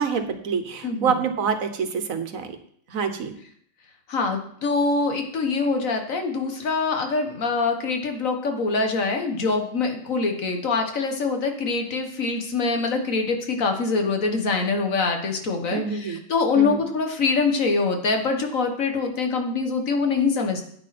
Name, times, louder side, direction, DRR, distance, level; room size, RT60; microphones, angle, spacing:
voice 1, 0.0-2.6 2.9-3.3 15.7-16.2 16.5-16.8, right 6 dB, 80° right, 8 dB, 1.5 m, -26 dB
voice 2, 0.8-1.2 4.1-20.6, left 4 dB, 75° left, 4 dB, 1.8 m, -24 dB
10.0 x 9.0 x 4.2 m, 0.63 s
omnidirectional pair, 1.4 m